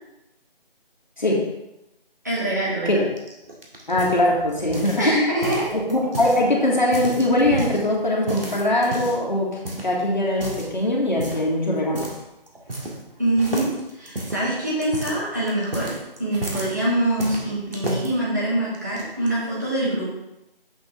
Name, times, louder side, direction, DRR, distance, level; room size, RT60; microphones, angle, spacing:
voice 1, 1.2-1.5 2.8-3.1 3.9-5.2 5.7-12.1, left 1 dB, 50° left, -3 dB, 1.6 m, -21 dB
voice 2, 2.2-3.0 5.0-5.7 13.2-13.7 13.9-15.9 16.2-20.1, right 1 dB, 20° right, -8 dB, 1.4 m, -24 dB
sound 1, 3.2-5.1 5.4-6.4 6.8-7.8 8.3-9.3 9.6-9.9 10.3-10.7 11.2-11.5 11.9-12.2 12.5-13.1 13.4-16.7 17.2-18.1 18.7-19.3, right 1 dB, 75° right, 2.0 m, -32 dB
7.5 x 6.9 x 3.5 m, 0.90 s
figure-of-eight pair, 180°, 29 cm